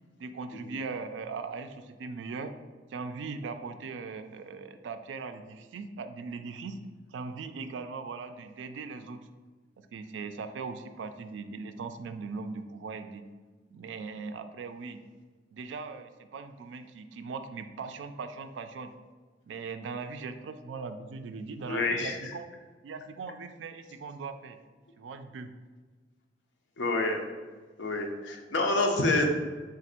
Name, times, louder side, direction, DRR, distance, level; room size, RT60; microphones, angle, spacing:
voice 1, 0.2-2.5 2.9-6.8 7.1-9.3 9.8-13.2 13.7-15.0 15.5-18.9 19.5-22.5 22.8-24.6 25.0-25.5, right 4 dB, 75° right, 9 dB, 0.3 m, -39 dB
voice 2, 21.7-22.3 26.8-27.2 27.8-29.3, left 2 dB, 70° left, 2 dB, 0.6 m, -28 dB
3.8 x 2.5 x 4.2 m, 1.4 s
head